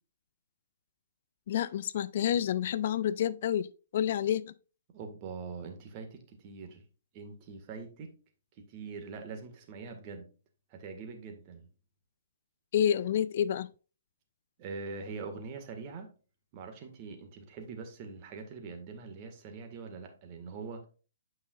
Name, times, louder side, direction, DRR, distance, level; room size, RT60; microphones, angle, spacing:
voice 1, 1.5-3.7 3.9-4.5 12.7-13.7, left 10 dB, 50° left, 0.4 m, -29 dB
voice 2, 4.9-6.8 7.1-8.1 8.6-10.3 10.7-11.7 14.6-16.1 16.5-20.9, right 4 dB, 35° right, 1.8 m, -43 dB
8.8 x 5.4 x 2.5 m
hypercardioid pair, 135°, 0 cm